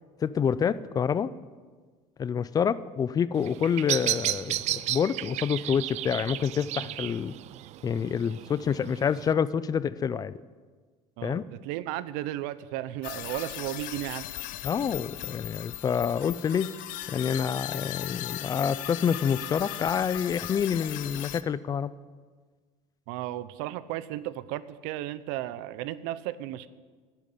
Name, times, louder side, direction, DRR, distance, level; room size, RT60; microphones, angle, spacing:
voice 1, 0.2-1.3 2.2-7.3 7.8-10.3 11.2-11.4 14.6-16.7 17.1-21.9, left 7 dB, 25° left, 18 dB, 0.4 m, -27 dB
Bird vocalization bird call bird song, 3.3-9.3, right 15 dB, 50° right, 0.4 m, -33 dB
voice 2, 11.2-14.2 23.1-26.7, right 14 dB, 85° right, 16 dB, 0.7 m, -34 dB
sound 1, 13.0-21.4, left 15 dB, 70° left, 0.7 m, -38 dB
11.0 x 8.9 x 9.9 m, 1.5 s
cardioid pair, 135°, 15 cm